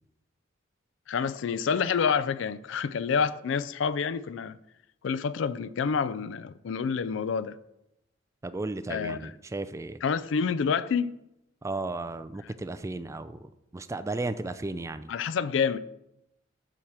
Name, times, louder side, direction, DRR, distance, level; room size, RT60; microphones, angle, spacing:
voice 1, 1.1-4.6 5.0-7.6 8.9-9.3 10.0-11.1 12.4-12.5 15.1-15.8, left 6 dB, 65° left, 0.4 m, -28 dB
voice 2, 8.4-10.0 11.6-15.1, right 2 dB, 15° right, 0.3 m, -34 dB
7.2 x 5.0 x 6.0 m
head